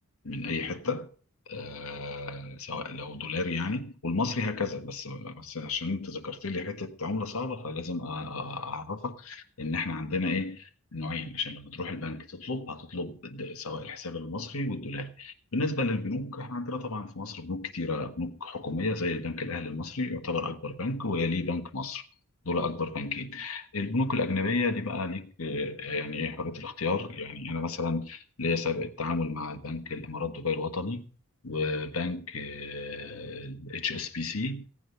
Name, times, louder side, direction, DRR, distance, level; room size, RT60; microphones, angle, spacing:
voice 1, 0.2-1.1 1.5-22.0 22.4-31.1 31.4-34.7, left 3 dB, 80° left, 1.5 m, -32 dB
16.5 x 8.7 x 5.6 m
head